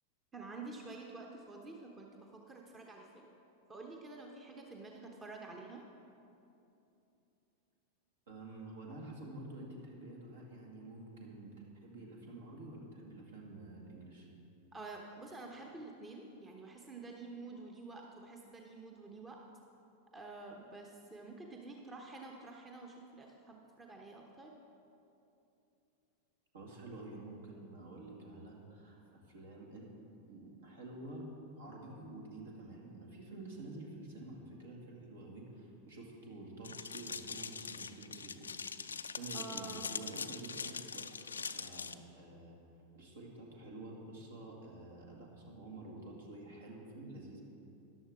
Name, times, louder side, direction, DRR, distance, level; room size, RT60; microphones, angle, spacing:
voice 1, 0.3-3.3 3.7-5.9 14.7-19.4 20.1-24.6 39.3-39.8, right 3 dB, 20° right, 1 dB, 0.9 m, -49 dB
voice 2, 8.3-11.5 11.8-14.3 26.5-29.9 30.3-31.3 31.5-38.5 39.2-41.2 41.5-42.6 42.9-47.4, right 2 dB, 65° right, -1 dB, 2.0 m, -49 dB
sound 1, 36.6-41.9, left 5 dB, 75° left, 0.4 m, -42 dB
14.0 x 11.0 x 3.6 m, 2.8 s
figure-of-eight pair, 90°, 0 cm